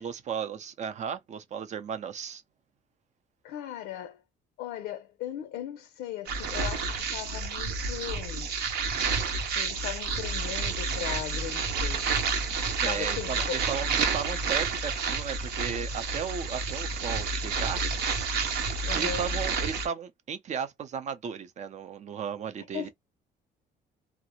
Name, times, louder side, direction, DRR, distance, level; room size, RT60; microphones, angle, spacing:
voice 1, 0.0-2.4 12.8-17.8 18.9-22.9, right 7 dB, 45° right, 0.5 m, -35 dB
voice 2, 3.4-4.2 4.6-8.6 9.6-12.2 12.8-13.6 18.9-19.3 22.7-22.9, left 11 dB, 85° left, 0.5 m, -38 dB
sound 1, 6.3-19.9, right 4 dB, 75° right, 0.8 m, -30 dB
2.4 x 2.0 x 2.8 m
cardioid pair, 110°, 17 cm